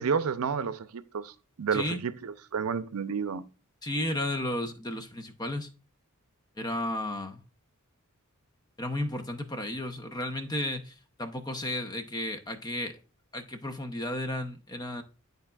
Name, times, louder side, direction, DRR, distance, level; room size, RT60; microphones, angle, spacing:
voice 1, 0.0-3.5, right 6 dB, 75° right, 0.6 m, -31 dB
voice 2, 1.7-2.0 3.8-5.7 6.6-7.4 8.8-13.0 13.3-15.0, left 1 dB, 20° left, 0.7 m, -33 dB
11.5 x 4.0 x 2.3 m
head